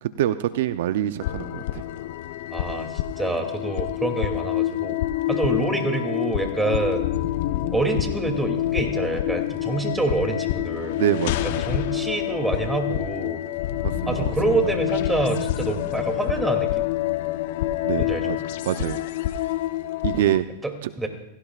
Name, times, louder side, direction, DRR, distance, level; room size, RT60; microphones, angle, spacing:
voice 1, 0.0-1.8 11.0-11.8 13.8-14.3 17.8-18.4 18.7-19.0 20.0-20.4 20.8-20.9, right 12 dB, 65° right, 11 dB, 0.6 m, -25 dB
sound 1, 1.2-20.4, left 14 dB, 60° left, 0.9 m, -27 dB
voice 2, 2.5-5.0 5.3-7.1 7.7-11.0 11.7-13.4 14.1-16.7 18.0-18.4 20.6-20.7 21.0-21.1, right 2 dB, 5° right, 3 dB, 2.7 m, -26 dB
28.0 x 17.0 x 2.5 m, 0.86 s
hypercardioid pair, 130°, 0 cm